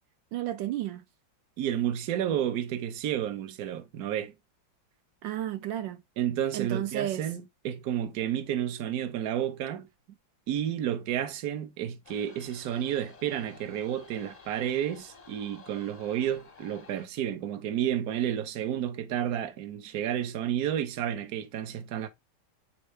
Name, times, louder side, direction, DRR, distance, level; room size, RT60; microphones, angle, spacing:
voice 1, 0.3-1.0 5.2-6.0 6.5-7.3, right 13 dB, 80° right, 1.3 m, -32 dB
voice 2, 1.6-4.3 6.2-9.9 10.5-22.1, right 10 dB, 60° right, 1.2 m, -31 dB
sound 1, 12.0-17.1, left 4 dB, 35° left, 0.6 m, -52 dB
7.6 x 4.2 x 3.2 m
omnidirectional pair, 2.1 m